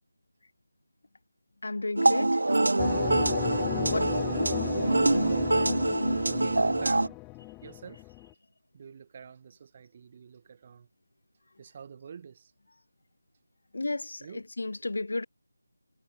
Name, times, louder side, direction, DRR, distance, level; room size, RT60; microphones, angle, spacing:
voice 1, 1.6-2.4 3.9-4.5 13.7-15.3, left 2 dB, 70° left, 1.4 m, -33 dB
sound 1, 2.0-7.1, right 2 dB, 80° right, 0.8 m, -25 dB
sound 2, 2.8-8.3, left 26 dB, 10° left, 0.4 m, -36 dB
voice 2, 4.3-4.6 5.3-6.0 6.3-7.2 7.6-8.1 8.7-10.9 11.6-12.5 14.2-14.4, right 7 dB, 25° right, 2.5 m, -47 dB
figure-of-eight pair, 170°, 0 cm